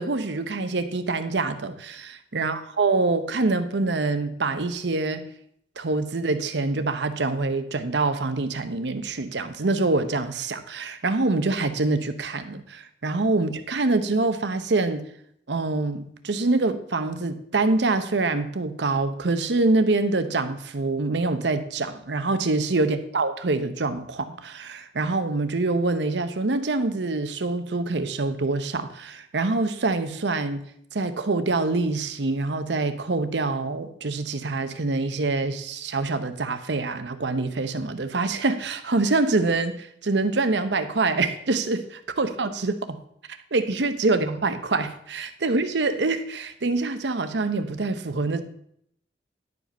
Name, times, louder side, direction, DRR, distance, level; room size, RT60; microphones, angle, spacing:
voice 1, 0.0-5.2 5.8-15.0 15.5-30.6 30.9-43.0 43.5-48.4, right 3 dB, 75° right, 10 dB, 0.8 m, -25 dB
11.0 x 5.1 x 5.3 m, 0.70 s
head